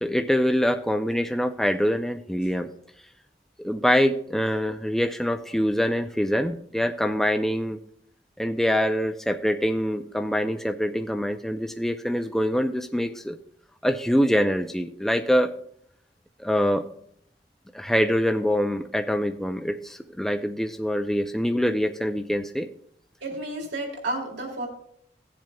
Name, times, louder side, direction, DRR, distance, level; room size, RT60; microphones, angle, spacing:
voice 1, 0.0-2.7 3.6-7.8 8.4-13.4 13.8-15.5 16.4-16.9 17.7-22.7, equal, ahead, 5 dB, 0.3 m, -24 dB
voice 2, 23.2-24.7, right 2 dB, 75° right, 0 dB, 2.6 m, -31 dB
17.5 x 7.6 x 2.3 m, 0.69 s
head